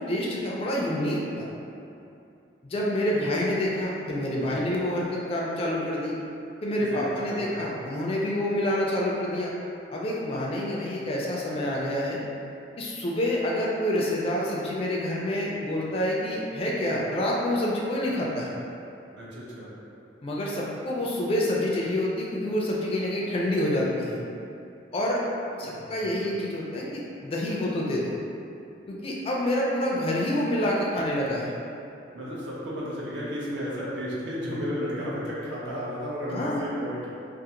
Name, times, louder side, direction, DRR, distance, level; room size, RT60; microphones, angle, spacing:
voice 1, 0.0-1.5 2.6-6.2 6.6-9.5 9.9-12.2 12.8-18.6 20.2-24.2 24.9-25.2 25.6-28.2 28.9-31.6 36.3-36.6, left 1 dB, 30° left, -4 dB, 0.3 m, -27 dB
voice 2, 6.8-7.7 19.2-19.7 25.5-26.3 32.1-37.1, equal, 70° right, -7 dB, 0.6 m, -34 dB
2.5 x 2.4 x 2.8 m, 2.7 s
head